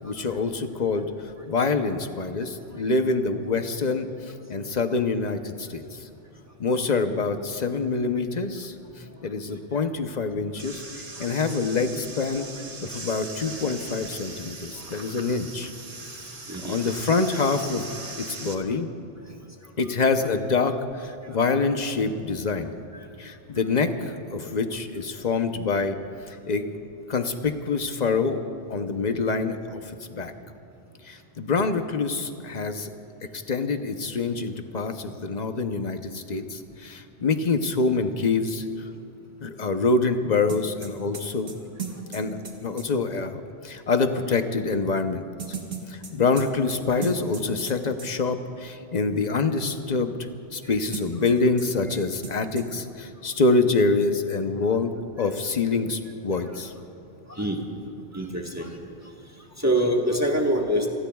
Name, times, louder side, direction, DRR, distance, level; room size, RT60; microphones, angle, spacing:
voice 1, 0.0-1.1 1.5-6.1 6.6-8.7 9.2-12.5 12.8-15.7 16.6-17.9 18.2-18.9 19.8-22.8 23.2-26.0 26.3-26.6 27.1-28.4 28.7-30.3 31.0-32.9 33.3-38.9 39.4-41.5 42.1-45.2 45.9-50.2 50.5-56.7, left 4 dB, 40° left, 7 dB, 0.8 m, -26 dB
sound 1, 10.6-18.5, right 3 dB, 35° right, 1.1 m, -40 dB
voice 2, 16.5-16.8 57.3-57.6 58.1-58.7 59.6-60.9, right 1 dB, 15° right, 0 dB, 1.4 m, -24 dB
sound 2, 40.5-42.9 45.4-47.7 48.0-48.1 50.9-51.7 51.9-52.0 52.2-52.6, right 5 dB, 65° right, 1.8 m, -36 dB
29.5 x 19.0 x 2.3 m, 2.6 s
omnidirectional pair, 1.2 m